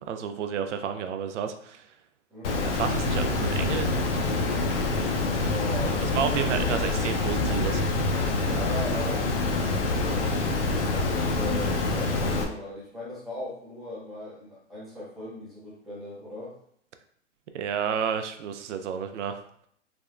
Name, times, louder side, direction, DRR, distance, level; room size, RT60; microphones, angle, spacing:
voice 1, 0.0-1.8 2.6-4.3 6.0-8.3 17.5-19.4, right 7 dB, 75° right, 8 dB, 0.5 m, -31 dB
voice 2, 2.3-2.7 5.4-6.0 8.4-16.5, left 1 dB, ahead, -9 dB, 0.5 m, -38 dB
Water, 2.4-12.4, left 3 dB, 50° left, 0.5 m, -26 dB
3.4 x 2.1 x 2.4 m, 0.65 s
hypercardioid pair, 140°, 37 cm